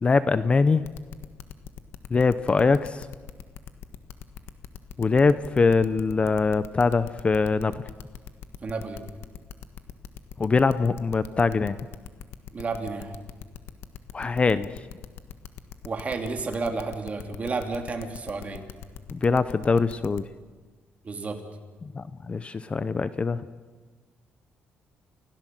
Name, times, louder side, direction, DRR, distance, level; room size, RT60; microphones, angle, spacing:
voice 1, 0.0-0.8 2.1-3.1 5.0-7.7 10.4-11.8 14.1-14.7 19.1-20.2 21.9-23.4, left 4 dB, 25° left, 14 dB, 0.7 m, -22 dB
sound 1, 0.8-20.2, left 10 dB, 75° left, 1.4 m, -41 dB
voice 2, 8.6-9.0 12.5-13.2 15.8-18.6 21.0-21.4, right 4 dB, 35° right, 4 dB, 2.9 m, -31 dB
29.5 x 16.5 x 7.7 m, 1.4 s
cardioid pair, 120°, 4 cm